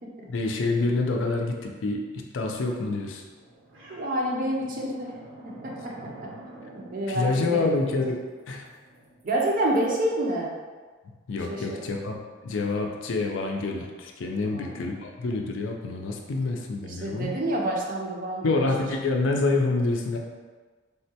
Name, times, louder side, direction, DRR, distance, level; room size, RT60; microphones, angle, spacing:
voice 1, 0.3-3.2 7.1-8.2 8.5-8.6 11.3-12.2 12.4-17.3 18.4-20.2, left 3 dB, 70° left, 2 dB, 0.4 m, -27 dB
sound 1, 2.9-10.0, right 1 dB, 75° right, 0.7 m, -48 dB
voice 2, 3.9-5.2 5.6-6.3 6.7-7.7 9.2-10.5 11.5-11.8 14.4-14.8 16.8-18.7, right 1 dB, 45° right, -2 dB, 0.5 m, -28 dB
3.5 x 2.2 x 2.7 m, 1.4 s
head